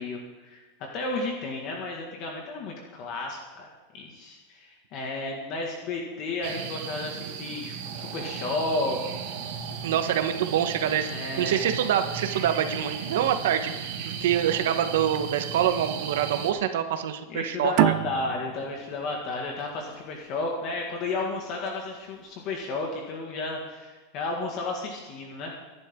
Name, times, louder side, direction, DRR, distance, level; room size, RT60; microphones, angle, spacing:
voice 1, 0.0-3.7 3.9-9.0 11.1-11.7 17.3-25.6, left 2 dB, 35° left, 0 dB, 2.0 m, -32 dB
sound 1, 6.4-16.5, right 7 dB, 55° right, 2.0 m, -35 dB
voice 2, 9.8-17.9, right 10 dB, 70° right, 8 dB, 1.3 m, -26 dB
sound 2, 17.8-21.0, right 15 dB, 40° right, 0.4 m, -27 dB
24.0 x 11.0 x 3.8 m, 1.3 s
supercardioid pair, 180°, 0 cm